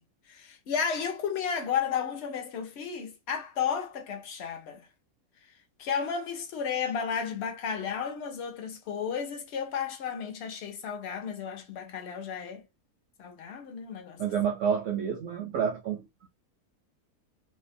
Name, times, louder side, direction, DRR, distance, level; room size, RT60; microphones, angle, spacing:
voice 1, 0.3-4.9 5.8-12.6 13.2-14.2, left 7 dB, 55° left, 0.8 m, -33 dB
voice 2, 14.2-16.1, right 7 dB, 70° right, 0.7 m, -29 dB
2.7 x 2.1 x 2.5 m
omnidirectional pair, 1.6 m